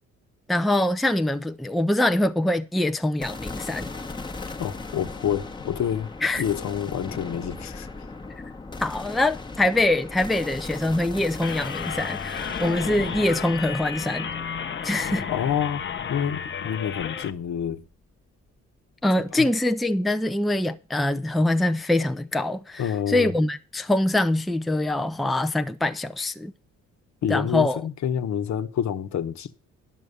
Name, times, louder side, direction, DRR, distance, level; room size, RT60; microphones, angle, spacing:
voice 1, 0.5-3.9 6.2-6.4 8.8-14.3 14.8-15.3 19.0-26.5 27.3-27.8, left 1 dB, ahead, 0.5 m, -24 dB
sound 1, 3.2-17.5, left 3 dB, 15° left, 1.0 m, -38 dB
voice 2, 4.6-6.1 6.4-7.9 15.3-15.8 16.1-17.9 19.3-19.5 22.8-23.3 27.2-29.5, left 9 dB, 65° left, 1.1 m, -28 dB
sound 2, 11.4-17.3, left 7 dB, 40° left, 0.8 m, -32 dB
11.0 x 6.2 x 6.6 m
cardioid pair, 90°, 30 cm